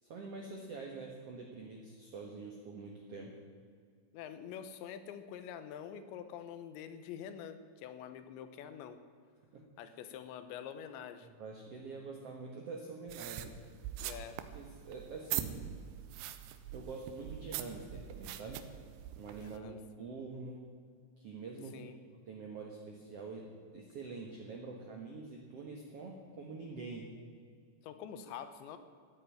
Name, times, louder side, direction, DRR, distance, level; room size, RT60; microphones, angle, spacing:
voice 1, 0.0-3.3 9.5-9.6 11.2-13.5 14.5-15.6 16.7-18.6 19.2-20.6 21.2-21.9 22.3-23.5 23.7-27.1, right 4 dB, 65° right, 0 dB, 1.5 m, -45 dB
voice 2, 4.1-9.0 9.8-11.3 14.0-14.4 19.4-19.8 21.7-22.0 27.8-28.8, left 8 dB, 85° left, 10 dB, 3.3 m, -46 dB
sound 1, 13.1-19.6, right 11 dB, 80° right, 2.9 m, -43 dB
13.0 x 9.5 x 9.9 m, 2.1 s
omnidirectional pair, 5.0 m